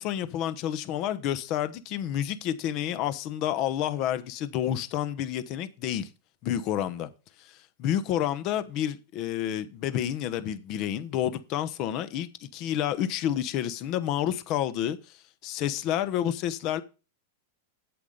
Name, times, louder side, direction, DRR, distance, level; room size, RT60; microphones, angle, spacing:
voice 1, 0.0-6.1 6.4-7.1 7.4-15.0 15.4-16.8, left 11 dB, 45° left, 1.0 m, -29 dB
8.2 x 7.9 x 5.1 m
hypercardioid pair, 115°, 0 cm